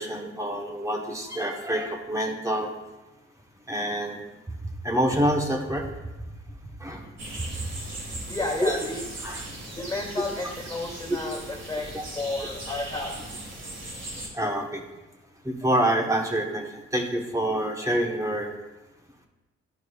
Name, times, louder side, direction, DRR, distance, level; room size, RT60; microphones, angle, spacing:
voice 1, 0.0-2.7 3.7-4.3 4.8-5.9 6.8-7.1 8.6-8.8 9.2-9.5 11.9-12.0 14.3-14.8 15.4-18.5, right 1 dB, 10° right, 1 dB, 1.1 m, -27 dB
sound 1, 7.2-14.3, right 1 dB, 55° right, 1.9 m, -38 dB
voice 2, 8.3-9.0 9.7-11.9 12.2-13.2, left 2 dB, 10° left, -3 dB, 2.3 m, -32 dB
11.0 x 4.7 x 2.3 m, 1.1 s
cardioid pair, 90°, 30 cm